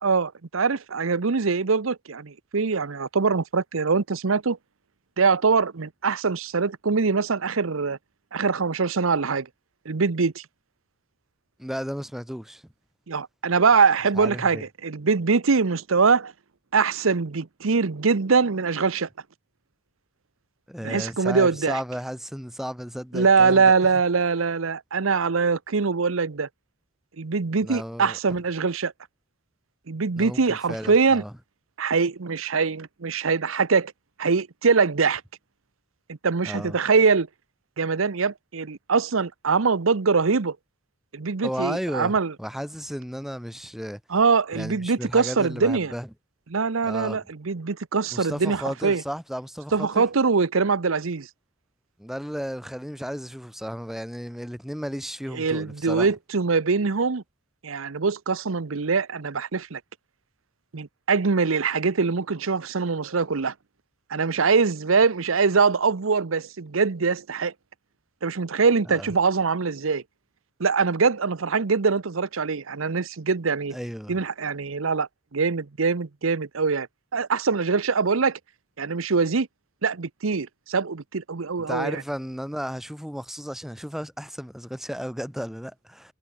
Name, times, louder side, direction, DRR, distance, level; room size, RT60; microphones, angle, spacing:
voice 1, 0.0-4.6 5.2-8.0 8.3-9.5 9.9-10.4 13.1-16.3 16.7-19.1 20.8-21.8 23.1-26.5 27.2-28.9 29.9-31.2 31.8-33.9 34.2-35.2 36.1-37.3 37.8-40.6 41.1-42.3 44.1-45.9 46.5-49.0 49.7-51.3 55.3-57.2 57.6-59.8 60.7-63.5 64.1-67.5 68.2-70.0 70.6-73.8 74.1-76.9 77.1-78.4 78.8-79.5 79.8-82.0, right 4 dB, 75° right, 0.8 m, -23 dB
voice 2, 11.6-12.6 14.2-14.6 20.7-23.6 27.6-28.4 30.2-31.3 36.4-36.8 41.4-44.0 44.5-46.1 46.8-47.2 48.1-50.1 52.0-56.1 68.8-69.1 73.7-74.2 81.7-86.1, equal, ahead, 6.3 m, -34 dB
head